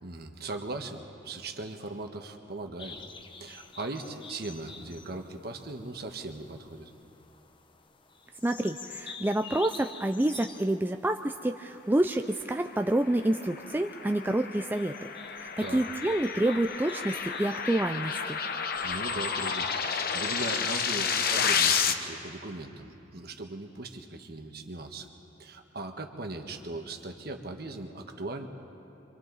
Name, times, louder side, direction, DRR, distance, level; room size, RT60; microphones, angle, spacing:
voice 1, 0.0-3.0 3.4-6.9 15.6-15.8 18.8-25.1 25.4-28.5, right 2 dB, 55° right, 5 dB, 1.4 m, -39 dB
sound 1, 2.8-20.9, left 5 dB, 25° left, 0.7 m, -48 dB
voice 2, 8.4-14.9 15.4-18.4, right 1 dB, 10° right, 5 dB, 0.4 m, -28 dB
sound 2, 13.1-21.9, left 6 dB, 55° left, 0.9 m, -31 dB
29.0 x 25.0 x 4.1 m, 2.9 s
head